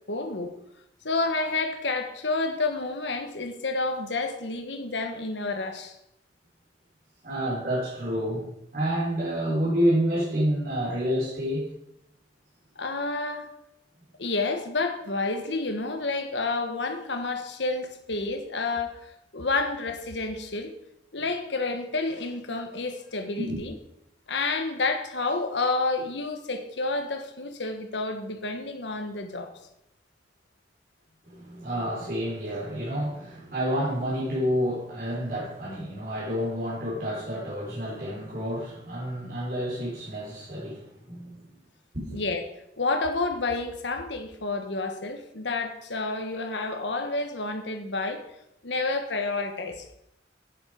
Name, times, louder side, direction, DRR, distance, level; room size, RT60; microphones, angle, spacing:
voice 1, 0.1-0.5 1.0-6.0 12.8-13.5 14.2-20.7 21.1-23.7 24.3-29.5 42.1-42.5 42.8-48.2 48.6-49.9, left 3 dB, 75° left, 1.4 m, -29 dB
voice 2, 7.2-11.7 23.4-23.6 31.2-41.4 41.9-42.2, equal, 50° right, 4.4 m, -29 dB
9.5 x 8.8 x 5.1 m
head